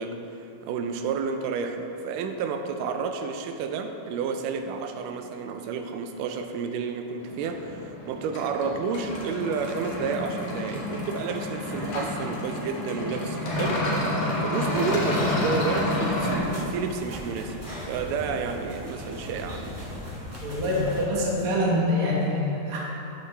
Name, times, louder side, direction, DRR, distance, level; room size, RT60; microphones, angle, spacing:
voice 1, 0.0-17.6 17.9-19.8, right 5 dB, 85° right, 6 dB, 2.1 m, -31 dB
sound 1, 7.2-16.4, left 1 dB, 65° left, 2.4 m, -29 dB
sound 2, 15.6-21.0, equal, 10° right, 0.8 m, -38 dB
voice 2, 20.4-22.8, left 1 dB, 50° right, -5 dB, 1.1 m, -25 dB
14.0 x 5.4 x 3.2 m, 2.9 s
omnidirectional pair, 3.8 m